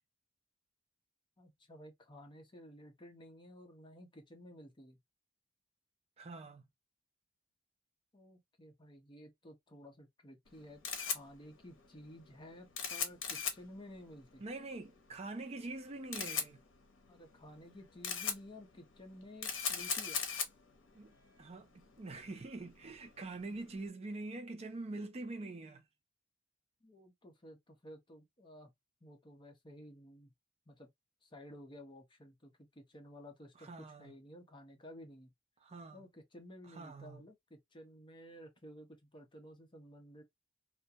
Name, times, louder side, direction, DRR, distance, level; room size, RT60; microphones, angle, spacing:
voice 1, 1.4-5.0 8.1-10.8 11.1-14.4 17.1-20.2 26.8-28.7 29.0-30.3 30.7-30.9 31.2-35.3 35.9-40.2, equal, 25° left, 0.7 m, -54 dB
voice 2, 6.2-6.7 14.4-16.6 20.9-25.8 33.6-34.1 35.6-36.0 36.7-37.2, right 2 dB, 30° right, 0.4 m, -45 dB
Camera, 10.5-23.8, left 6 dB, 70° left, 0.8 m, -41 dB
2.3 x 2.1 x 2.7 m
head